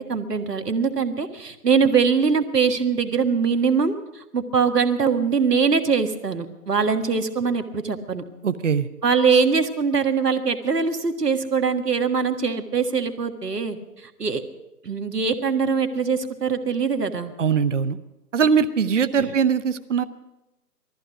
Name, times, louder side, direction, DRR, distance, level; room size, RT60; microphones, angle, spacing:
voice 1, 0.0-8.2 9.0-14.4 14.8-17.3 19.2-19.3, right 5 dB, 70° right, 7 dB, 1.7 m, -22 dB
voice 2, 8.4-8.9 17.4-18.0 18.3-20.0, right 6 dB, 45° right, 13 dB, 0.8 m, -21 dB
19.5 x 14.5 x 5.1 m, 0.99 s
figure-of-eight pair, 150°, 49 cm